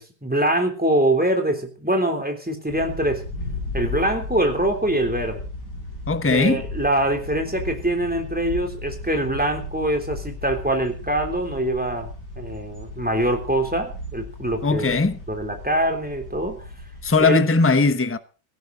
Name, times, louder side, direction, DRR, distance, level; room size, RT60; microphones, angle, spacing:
voice 1, 0.0-3.2 3.7-5.4 6.3-12.1 12.4-15.0 15.3-16.6 17.2-17.4, right 1 dB, 5° right, 3.3 m, -24 dB
sound 1, 2.7-17.3, left 2 dB, 75° left, 8.3 m, -35 dB
voice 2, 6.1-6.6 14.6-15.2 17.0-18.2, left 3 dB, 10° left, 0.8 m, -19 dB
17.5 x 16.0 x 4.0 m
omnidirectional pair, 1.8 m